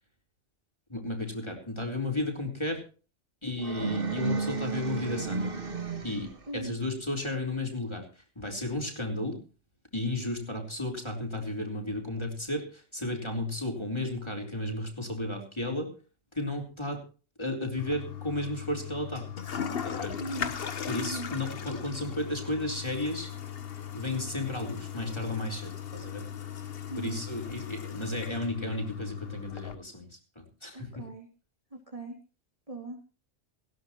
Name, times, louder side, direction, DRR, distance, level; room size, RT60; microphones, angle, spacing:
voice 1, 0.9-2.8 3.4-5.5 6.0-9.4 9.9-15.9 16.3-17.0 17.4-19.3 19.8-20.1 20.9-23.3 23.9-26.2 27.0-30.1 30.4-31.0, left 1 dB, 20° left, 2 dB, 4.1 m, -33 dB
sound 1, 3.6-6.5, right 4 dB, 50° right, 1.8 m, -32 dB
voice 2, 6.5-6.8 20.2-20.5 21.0-21.3 26.9-27.2 30.7-31.3 31.7-32.2 32.7-33.0, right 2 dB, 30° right, 0 dB, 2.9 m, -39 dB
Toilet flush, 17.8-29.7, left 8 dB, 55° left, 1.2 m, -38 dB
18.5 x 16.0 x 3.0 m, 0.37 s
omnidirectional pair, 1.2 m